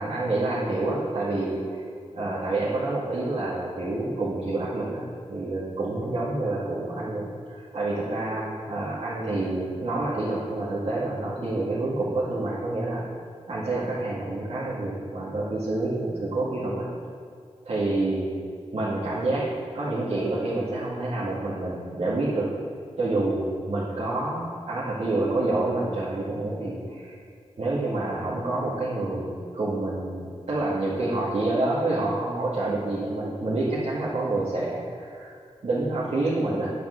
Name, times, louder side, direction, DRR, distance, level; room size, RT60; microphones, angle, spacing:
voice 1, 0.0-1.8 2.1-5.0 5.3-13.1 13.5-16.9 17.6-18.4 18.7-19.5 19.7-22.5 23.0-27.2 27.6-35.4 35.6-36.7, right 2 dB, 75° right, -10 dB, 2.3 m, -28 dB
9.4 x 5.2 x 8.0 m, 2.3 s
wide cardioid pair, 85°, 11 cm